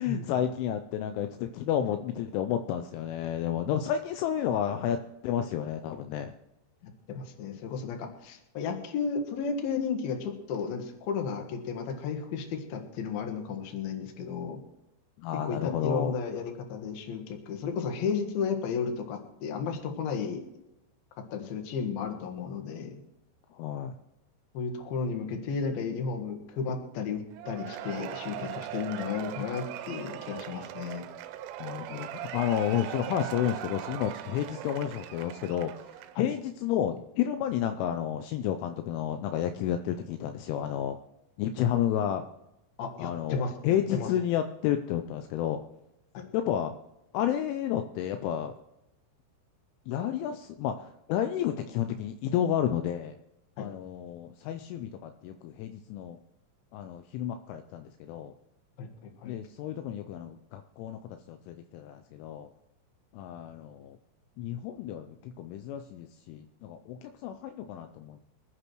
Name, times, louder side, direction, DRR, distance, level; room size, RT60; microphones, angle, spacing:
voice 1, 0.0-6.3 15.2-16.2 23.5-24.0 31.6-35.7 36.2-41.0 41.4-42.2 43.0-45.6 46.3-46.7 47.1-48.5 49.9-53.2 53.6-56.2 56.7-58.3 59.3-62.5 63.1-64.0 64.4-68.2, left 10 dB, 80° left, 8 dB, 3.0 m, -31 dB
voice 2, 6.8-14.6 15.4-20.4 21.3-22.9 24.5-31.0 36.2-36.3 42.8-43.5 43.9-44.1 46.1-46.3 53.6-53.7 58.8-59.3, left 5 dB, 60° left, 4 dB, 2.9 m, -33 dB
Cheering / Applause / Crowd, 27.4-36.3, right 12 dB, 80° right, 3.0 m, -39 dB
25.0 x 9.9 x 3.1 m, 0.91 s
omnidirectional pair, 5.7 m